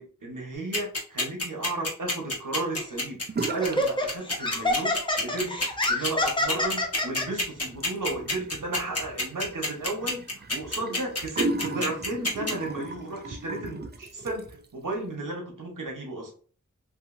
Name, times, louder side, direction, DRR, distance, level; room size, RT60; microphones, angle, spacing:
voice 1, 0.0-5.6 5.9-16.3, right 2 dB, 80° right, 1 dB, 1.0 m, -34 dB
sound 1, 0.7-12.5, left 2 dB, 50° left, 1.1 m, -27 dB
Laughter, 2.8-3.0 3.6-7.3, left 1 dB, 15° left, 0.6 m, -27 dB
sound 2, 3.3-3.9 4.2-4.8 5.2-14.7, right 3 dB, 35° right, 0.4 m, -36 dB
2.8 x 2.5 x 2.5 m, 0.42 s
wide cardioid pair, 45°, 32 cm